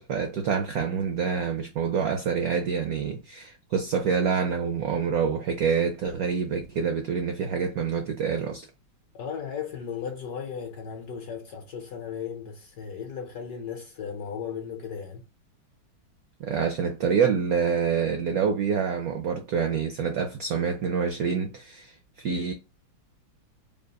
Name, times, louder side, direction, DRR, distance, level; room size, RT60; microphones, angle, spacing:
voice 1, 0.0-8.7 16.4-22.5, right 6 dB, 75° right, 0.8 m, -27 dB
voice 2, 9.1-15.2, left 7 dB, 65° left, 1.0 m, -36 dB
3.7 x 2.4 x 3.9 m
omnidirectional pair, 2.3 m